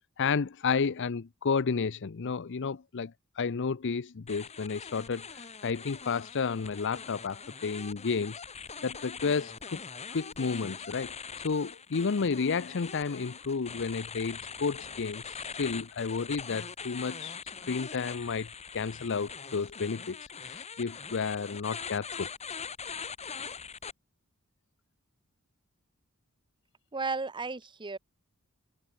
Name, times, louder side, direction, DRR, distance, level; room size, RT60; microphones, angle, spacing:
voice 1, 0.2-8.3 8.8-9.8 10.1-17.4 17.6-22.3, left 5 dB, 55° left, 0.6 m, -32 dB
sound 1, 4.3-23.9, left 6 dB, 30° left, 2.2 m, -42 dB
voice 2, 26.9-28.0, right 4 dB, 20° right, 0.9 m, -34 dB
head